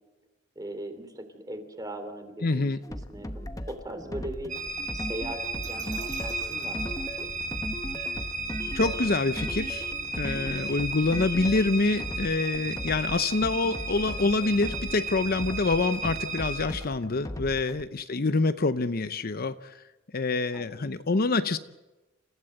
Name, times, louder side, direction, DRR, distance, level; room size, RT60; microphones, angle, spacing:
voice 1, 0.5-4.5 4.9-7.3 18.1-18.4 20.5-20.9, right 1 dB, 20° right, 8 dB, 2.9 m, -40 dB
voice 2, 2.4-2.8 8.7-19.7 20.1-21.6, left 3 dB, 45° left, 11 dB, 0.7 m, -26 dB
sound 1, 2.8-17.8, equal, 15° left, 1.1 m, -38 dB
sound 2, 4.5-16.7, right 3 dB, 40° right, 3.9 m, -34 dB
sound 3, 5.6-7.7, right 7 dB, 60° right, 4.0 m, -49 dB
29.0 x 16.0 x 7.8 m, 1.1 s
head